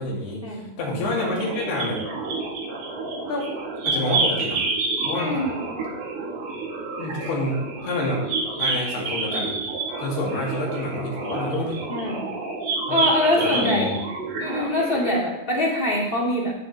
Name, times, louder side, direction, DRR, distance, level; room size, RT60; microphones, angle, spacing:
voice 1, 0.0-2.0 3.3-3.5 3.9-4.7 5.0-5.4 7.0-8.3 8.6-9.6 10.0-11.8 12.9-13.9, left 1 dB, 65° left, -3 dB, 4.3 m, -28 dB
sound 1, 1.0-15.2, right 3 dB, 85° right, 1.4 m, -29 dB
voice 2, 5.2-5.5 11.9-12.3 12.9-14.0 14.4-16.5, left 1 dB, 35° left, -5 dB, 0.8 m, -23 dB
17.0 x 6.6 x 3.2 m, 0.91 s
omnidirectional pair, 5.1 m